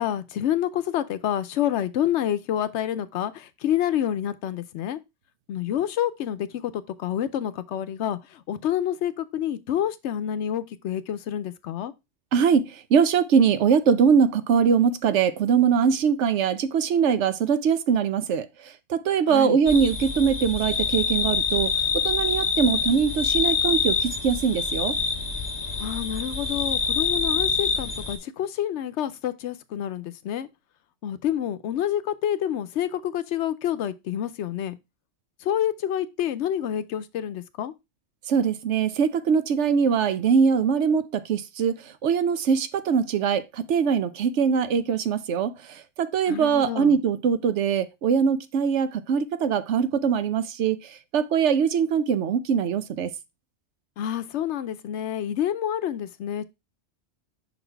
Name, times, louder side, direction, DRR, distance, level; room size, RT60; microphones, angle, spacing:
voice 1, 0.0-5.0 5.5-11.9 19.3-19.6 25.8-30.5 31.0-34.8 35.4-37.7 46.3-47.0 54.0-56.4, left 10 dB, 90° left, 0.9 m, -28 dB
voice 2, 12.3-12.7 12.9-18.5 18.9-21.7 22.0-24.9 38.3-41.8 42.0-45.5 46.0-50.8 51.1-53.1, right 6 dB, 90° right, 1.0 m, -22 dB
sound 1, 19.7-28.2, left 5 dB, 20° left, 1.8 m, -26 dB
5.8 x 4.2 x 4.4 m
omnidirectional pair, 1.2 m